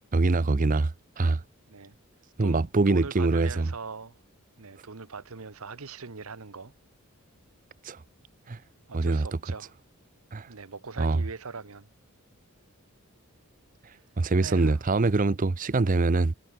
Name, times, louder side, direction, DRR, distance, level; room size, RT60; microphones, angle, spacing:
voice 1, 0.1-1.4 2.4-3.7 7.8-8.0 8.5-8.6 8.9-9.3 10.3-10.5 11.0-11.2 13.8-16.3, right 3 dB, 35° right, 0.6 m, -24 dB
voice 2, 2.4-4.2 4.6-6.7 8.9-9.7 10.5-11.9 14.4-14.8, right 4 dB, 75° right, 1.1 m, -41 dB
head